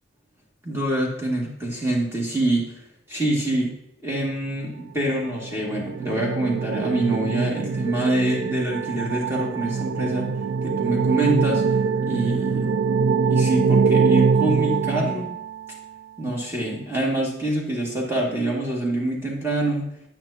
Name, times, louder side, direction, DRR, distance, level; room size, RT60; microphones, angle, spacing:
voice 1, 0.6-2.7 3.1-3.7 4.0-10.3 10.6-11.7 12.0-12.7 13.2-15.3 16.2-20.0, right 1 dB, 15° right, -3 dB, 2.2 m, -25 dB
sound 1, 5.1-15.9, right 5 dB, 80° right, 0.4 m, -23 dB
9.4 x 8.9 x 2.9 m, 0.78 s
head